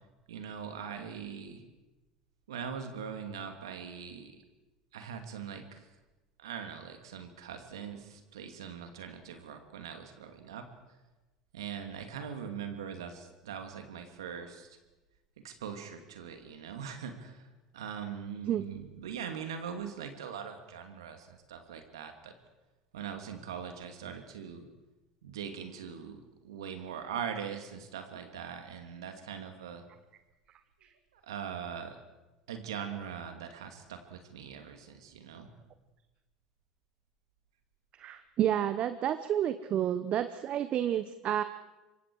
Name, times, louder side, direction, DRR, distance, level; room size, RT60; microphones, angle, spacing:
voice 1, 0.3-1.6 2.5-4.4 4.9-5.9 6.4-10.7 11.5-14.8 15.4-22.3 22.9-24.7 25.2-29.9 31.1-32.0 32.5-35.5, right 7 dB, 80° right, 6 dB, 2.6 m, -41 dB
voice 2, 38.0-41.4, right 10 dB, 45° right, 11 dB, 1.0 m, -30 dB
27.0 x 24.0 x 4.9 m, 1.1 s
hypercardioid pair, 75°, 3 cm